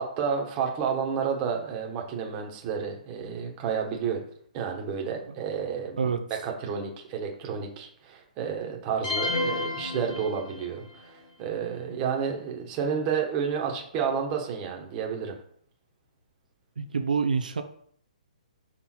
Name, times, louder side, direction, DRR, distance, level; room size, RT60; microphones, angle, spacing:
voice 1, 0.0-4.2 4.5-15.4, right 6 dB, 25° right, 1 dB, 1.2 m, -31 dB
sound 1, 9.0-10.9, left 2 dB, 70° left, 2.2 m, -30 dB
voice 2, 16.8-17.6, right 5 dB, 90° right, 6 dB, 0.6 m, -26 dB
5.9 x 3.8 x 4.4 m, 0.62 s
hypercardioid pair, 150°, 4 cm